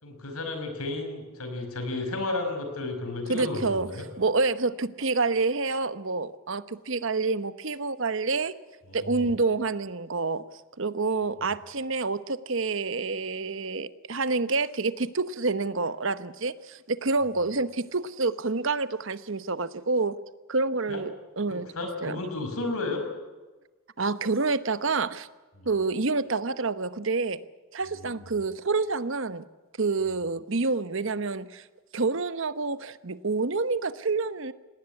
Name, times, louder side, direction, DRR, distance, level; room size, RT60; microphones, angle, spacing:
voice 1, 0.0-4.0 8.9-9.3 20.9-21.0 21.5-23.1 25.6-25.7 28.0-28.2, left 2 dB, 90° left, 6 dB, 5.3 m, -33 dB
voice 2, 3.3-3.9 4.2-8.5 8.9-10.4 10.8-20.1 20.5-21.7 22.0-22.2 24.0-25.3 25.7-27.4 27.7-29.4 29.8-31.6 31.9-34.5, right 3 dB, 60° right, 14 dB, 1.0 m, -28 dB
19.0 x 18.5 x 9.7 m, 1.2 s
head